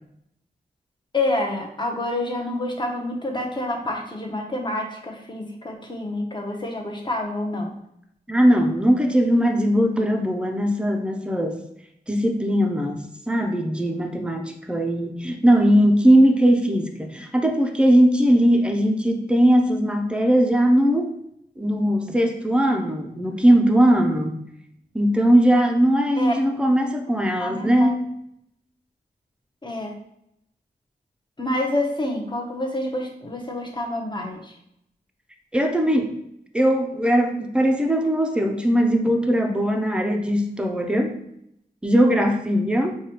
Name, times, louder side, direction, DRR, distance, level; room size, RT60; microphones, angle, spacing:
voice 1, 1.1-7.7 26.2-26.3 27.4-28.0 29.6-29.9 31.4-34.5, left 1 dB, 25° left, 1 dB, 0.8 m, -28 dB
voice 2, 8.3-11.6 12.1-21.2 21.6-24.4 24.9-28.1 35.5-36.2 36.5-41.2 41.8-43.0, equal, 5° right, 4 dB, 0.5 m, -19 dB
4.8 x 2.3 x 2.9 m, 0.77 s
wide cardioid pair, 70°, 18 cm